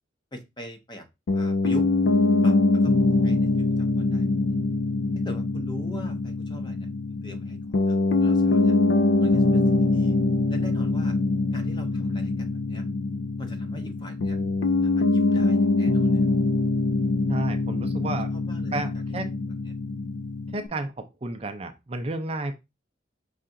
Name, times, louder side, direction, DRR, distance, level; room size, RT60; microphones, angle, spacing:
voice 1, 0.3-1.1 1.3-1.9 2.4-2.9 3.2-3.5 3.8-4.5 5.1-7.6 7.8-8.7 9.2-9.6 9.9-10.2 10.5-11.1 11.5-12.9 13.4-14.4 14.8-16.2 18.3-18.8 19.4-19.8, equal, 25° left, 5 dB, 0.7 m, -41 dB
Piano, 1.3-20.7, left 3 dB, 75° left, 0.4 m, -23 dB
voice 2, 17.3-18.3 18.7-19.3 20.5-22.5, right 2 dB, 30° right, 7 dB, 0.5 m, -32 dB
5.6 x 2.4 x 3.7 m, 0.23 s
head